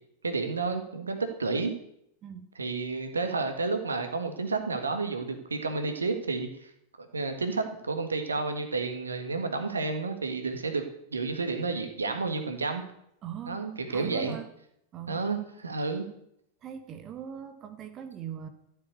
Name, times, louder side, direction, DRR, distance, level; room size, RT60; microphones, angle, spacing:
voice 1, 0.2-1.7 2.5-6.7 7.0-10.8 11.1-12.8 13.5-14.4 15.1-16.1, right 3 dB, 75° right, 6 dB, 1.7 m, -31 dB
voice 2, 13.2-14.5 14.9-15.2 16.6-18.5, right 9 dB, 30° right, 8 dB, 1.5 m, -40 dB
13.5 x 7.7 x 8.0 m, 0.74 s
figure-of-eight pair, 90°, 0 cm